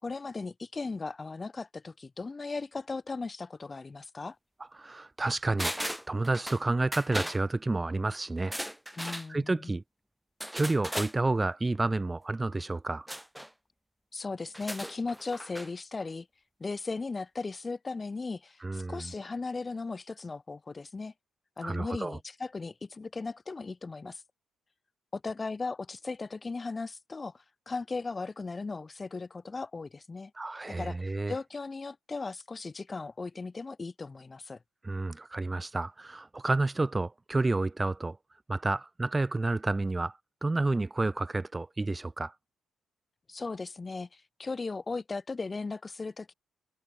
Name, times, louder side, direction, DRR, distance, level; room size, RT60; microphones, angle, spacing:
voice 1, 0.0-4.4 9.0-9.7 14.1-16.3 16.6-21.1 21.6-24.2 25.1-30.3 30.8-31.0 31.3-34.6 43.3-46.3, left 3 dB, 25° left, 3.9 m, -37 dB
voice 2, 4.7-5.7 6.1-8.6 9.3-9.8 10.5-13.1 18.6-19.1 21.6-22.2 30.3-31.3 34.8-38.2 38.5-42.3, right 2 dB, 20° right, 1.6 m, -30 dB
sound 1, 5.6-6.6 6.9-7.4 8.4-9.3 10.4-11.1 13.1-13.5 14.5-15.7 16.0-16.1, equal, 5° right, 2.6 m, -36 dB
cardioid pair, 90°, 0 cm